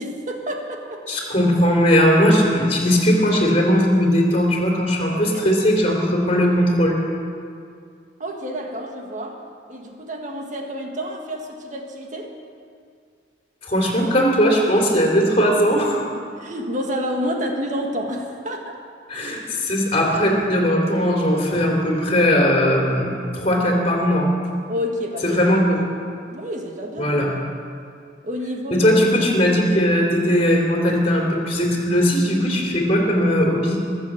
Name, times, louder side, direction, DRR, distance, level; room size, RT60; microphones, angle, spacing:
voice 1, 0.0-1.0 5.1-5.5 8.2-9.4 9.7-12.3 16.1-18.8 24.7-25.4 25.8-25.9 26.3-27.2 28.2-28.9, equal, 45° right, 2 dB, 1.8 m, -29 dB
voice 2, 1.1-7.0 13.6-16.0 19.1-24.3 25.2-25.8 27.0-27.3 28.7-33.8, equal, 35° left, -1 dB, 3.0 m, -19 dB
22.5 x 7.8 x 7.3 m, 2.3 s
head